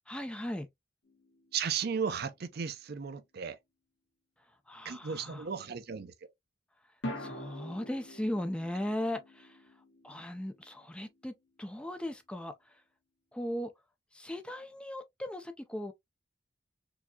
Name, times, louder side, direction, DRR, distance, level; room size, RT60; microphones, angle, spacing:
voice 1, 0.1-0.7 4.7-5.4 7.2-9.5 10.0-11.3 11.6-12.5 13.3-13.7 14.1-15.9, left 1 dB, 5° left, 0.4 m, -37 dB
sound 1, 1.0-2.2 7.0-11.3, left 1 dB, 65° left, 1.6 m, -45 dB
voice 2, 1.5-3.6 4.8-6.1, right 6 dB, 55° right, 0.5 m, -35 dB
4.6 x 2.7 x 2.2 m
head